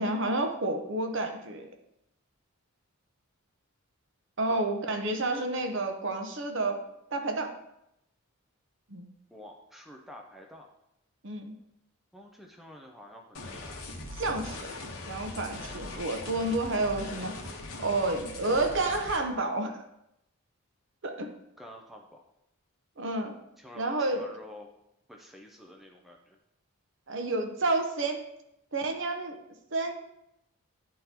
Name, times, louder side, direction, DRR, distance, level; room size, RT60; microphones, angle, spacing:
voice 1, 0.0-1.7 4.4-6.8 7.1-7.5 8.9-9.1 11.2-11.5 14.1-14.8 15.1-17.3 17.8-19.8 21.0-21.3 23.0-23.4 23.7-24.3 27.1-28.2 28.7-29.4 29.7-29.9, right 2 dB, 55° right, 5 dB, 0.7 m, -30 dB
voice 2, 9.3-10.7 12.1-13.8 21.6-22.2 23.6-24.7 25.1-26.4, equal, ahead, 0 dB, 0.4 m, -49 dB
sound 1, 13.3-19.2, left 2 dB, 70° left, 1.0 m, -40 dB
10.5 x 3.7 x 2.9 m, 0.83 s
head